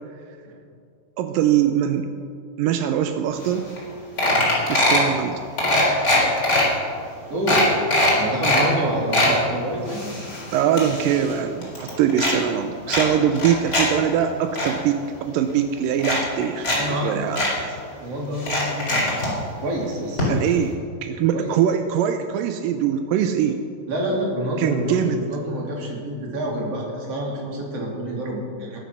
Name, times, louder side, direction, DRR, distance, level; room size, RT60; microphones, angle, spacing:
voice 1, 1.2-2.1 2.6-3.7 4.7-5.4 10.5-17.8 20.3-23.6 24.6-25.2, right 9 dB, 85° right, 7 dB, 2.0 m, -22 dB
sound 1, 3.5-3.6 3.8-3.9 4.2-5.1 5.6-6.6 7.1-7.2 7.5-8.7 8.9-9.3 9.9-11.4 11.6-12.3 12.9-13.9 14.2-14.7 15.5-15.6 16.0-16.8 17.0-17.1 17.4-17.5 18.4-19.3 20.2-20.3 20.6-20.7, left 1 dB, 20° left, 3.7 m, -21 dB
voice 2, 7.3-7.7 8.2-10.2 13.2-13.4 16.6-17.3 18.0-19.2 19.6-20.3 21.3-21.5 23.9-28.8, right 1 dB, 40° right, -2 dB, 3.4 m, -28 dB
20.5 x 8.4 x 6.2 m, 2.4 s
omnidirectional pair, 4.7 m